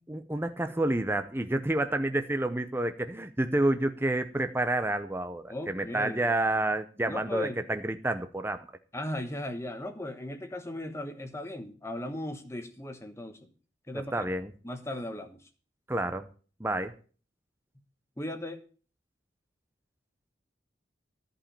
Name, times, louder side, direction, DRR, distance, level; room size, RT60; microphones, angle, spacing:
voice 1, 0.0-8.7 14.1-14.5 15.9-16.3 16.6-17.0, right 1 dB, 10° right, 8 dB, 0.6 m, -29 dB
voice 2, 5.5-6.3 7.0-7.6 8.9-13.5 13.9-14.2 14.6-15.4 18.2-18.6, left 1 dB, 15° left, 8 dB, 1.1 m, -37 dB
14.0 x 5.1 x 8.7 m, 0.40 s
head